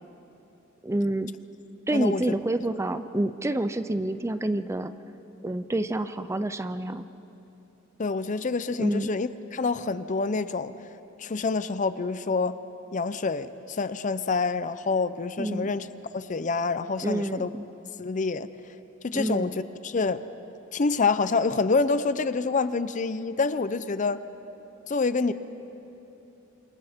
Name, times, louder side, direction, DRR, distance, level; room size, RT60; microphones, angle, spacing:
voice 1, 0.8-1.3 1.9-4.9 5.4-7.1 8.8-9.1 15.4-15.7 17.0-17.7 19.1-19.5, right 1 dB, 15° right, 11 dB, 0.4 m, -28 dB
voice 2, 1.9-2.4 8.0-10.7 11.2-12.6 12.9-15.9 16.1-17.5 18.0-18.5 19.0-19.5 19.8-20.2 20.7-24.2 24.9-25.3, left 4 dB, 40° left, 13 dB, 0.5 m, -27 dB
28.5 x 27.0 x 3.6 m, 3.0 s
head